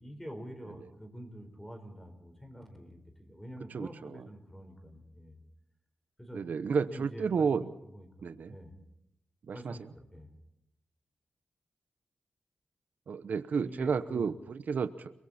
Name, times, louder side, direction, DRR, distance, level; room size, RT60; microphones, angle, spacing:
voice 1, 0.0-5.4 6.2-6.4 6.8-8.8 9.5-10.3 13.6-14.3, equal, 10° left, 6 dB, 4.5 m, -47 dB
voice 2, 3.7-4.1 6.3-7.7 8.2-8.5 9.5-9.8 13.1-15.1, right 6 dB, 75° right, 12 dB, 0.9 m, -31 dB
29.5 x 22.5 x 4.3 m, 0.83 s
wide cardioid pair, 130°, 3 cm